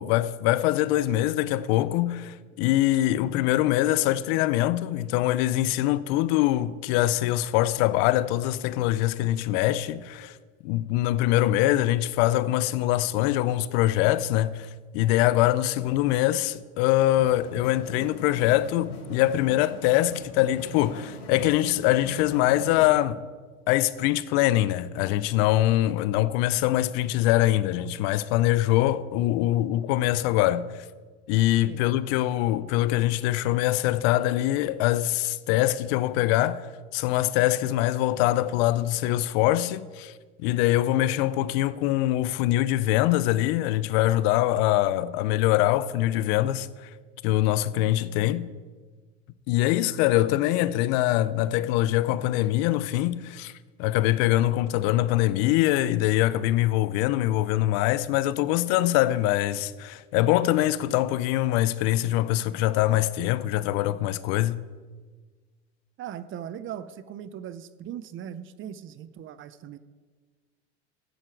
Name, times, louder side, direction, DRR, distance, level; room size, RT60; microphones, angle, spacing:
voice 1, 0.0-10.4 10.6-14.7 14.9-23.2 23.7-30.7 31.3-36.6 36.9-40.1 40.4-46.9 47.2-48.5 49.5-53.5 53.8-64.6, left 14 dB, 60° left, 0.6 m, -23 dB
sound 1, 17.0-22.9, left 3 dB, 85° left, 3.3 m, -40 dB
voice 2, 66.0-69.8, right 9 dB, 35° right, 0.6 m, -39 dB
14.0 x 9.2 x 4.6 m
supercardioid pair, 105°, 35 cm